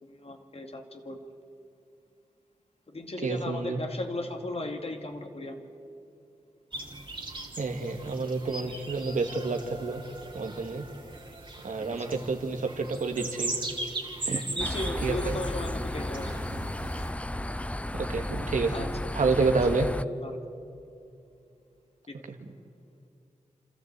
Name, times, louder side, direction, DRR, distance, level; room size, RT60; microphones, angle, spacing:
voice 1, 0.0-1.3 2.9-5.7 11.8-12.1 14.2-16.3 18.7-18.9 19.3-19.5 20.2-20.4 22.1-22.2, left 2 dB, 50° left, 5 dB, 2.3 m, -37 dB
voice 2, 3.2-3.8 7.6-10.0 10.3-10.8 11.6-13.6 14.3-14.4 15.0-15.4 17.9-18.8 19.1-19.9, right 4 dB, 75° right, 5 dB, 1.9 m, -29 dB
sound 1, 6.7-17.1, right 2 dB, 40° right, 2.9 m, -39 dB
sound 2, 14.6-20.0, left 1 dB, 10° left, 0.5 m, -33 dB
29.0 x 13.5 x 8.3 m, 2.5 s
cardioid pair, 45°, 13 cm